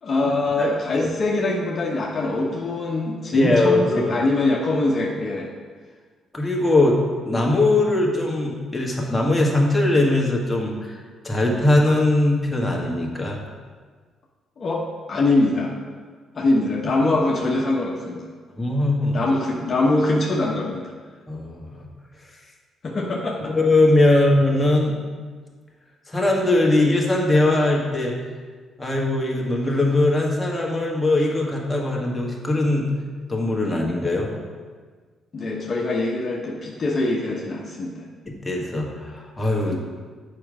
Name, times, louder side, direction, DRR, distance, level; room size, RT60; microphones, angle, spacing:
voice 1, 0.0-5.5 14.6-15.7 16.3-18.3 19.1-20.9 22.8-23.5 24.1-24.2 35.3-38.1 39.7-39.8, left 2 dB, 45° left, -2 dB, 1.0 m, -23 dB
voice 2, 0.6-1.1 3.3-4.1 6.3-11.0 11.2-13.4 16.9-17.1 18.6-19.2 21.3-21.8 23.5-25.0 26.1-28.1 28.8-32.9 33.3-34.4 38.2-39.8, left 2 dB, 15° left, -2 dB, 1.6 m, -20 dB
7.6 x 5.2 x 4.9 m, 1.5 s
cardioid pair, 90°, 0 cm